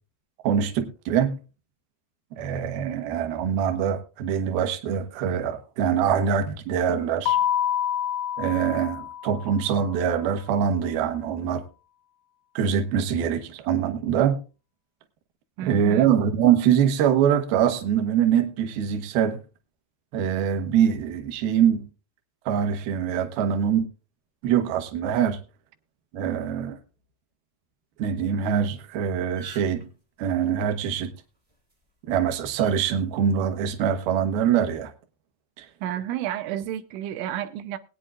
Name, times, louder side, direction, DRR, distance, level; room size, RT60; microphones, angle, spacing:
voice 1, 0.4-1.4 2.3-7.4 8.4-11.6 12.6-14.4 15.6-19.4 20.1-21.9 22.5-23.9 24.4-25.4 26.1-26.8 28.0-29.9 30.2-31.1 32.1-34.9 35.6-35.7, right 8 dB, 70° right, 2.6 m, -24 dB
Keyboard (musical), 7.3-9.8, left 10 dB, 75° left, 2.0 m, -27 dB
voice 2, 15.6-16.1 35.8-37.8, right 11 dB, 85° right, 3.2 m, -31 dB
sound 1, 28.8-28.9 29.2-29.8 31.5-31.7 32.6-32.7 33.8-34.0, right 3 dB, 50° right, 0.4 m, -46 dB
21.5 x 9.1 x 2.4 m
omnidirectional pair, 5.2 m